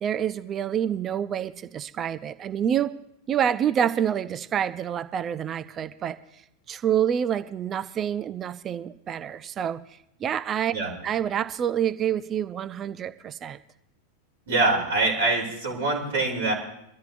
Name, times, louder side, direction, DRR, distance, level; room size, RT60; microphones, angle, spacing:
voice 1, 0.0-2.9 3.3-6.2 6.7-9.8 10.2-10.7 11.0-13.6, right 9 dB, 25° right, 14 dB, 0.5 m, -27 dB
voice 2, 14.5-16.5, right 3 dB, 60° right, -3 dB, 3.4 m, -24 dB
23.5 x 13.5 x 2.6 m, 0.78 s
figure-of-eight pair, 90°, 0 cm